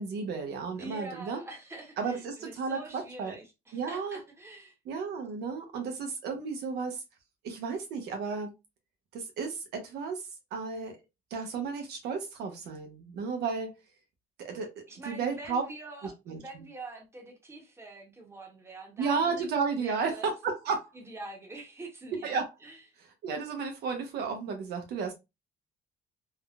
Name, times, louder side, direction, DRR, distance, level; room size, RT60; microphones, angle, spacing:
voice 1, 0.0-1.4 2.0-3.3 3.7-4.2 4.8-7.0 7.4-8.5 9.1-10.2 10.5-11.0 11.3-13.7 14.4-14.7 15.1-15.6 16.0-16.6 19.0-20.9 22.2-22.5 23.2-25.1, right 5 dB, 75° right, 0.8 m, -33 dB
voice 2, 0.8-4.7 14.9-19.4 19.7-20.3 20.9-22.8, right 2 dB, 15° right, 1.0 m, -45 dB
3.5 x 2.1 x 2.3 m
cardioid pair, 110°, 17 cm